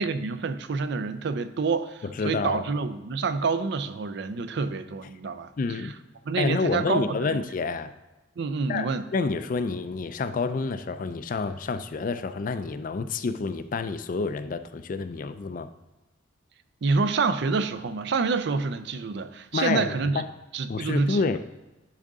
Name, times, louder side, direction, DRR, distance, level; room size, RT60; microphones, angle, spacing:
voice 1, 0.0-5.5 5.8-5.9 6.3-7.4 8.4-9.1 16.8-20.2 20.5-21.4, right 4 dB, 60° right, 0.4 m, -27 dB
voice 2, 2.2-2.6 5.6-5.9 6.4-7.9 8.7-15.7 19.5-20.2 20.7-21.4, left 4 dB, 45° left, 0.4 m, -28 dB
10.0 x 3.8 x 3.6 m
head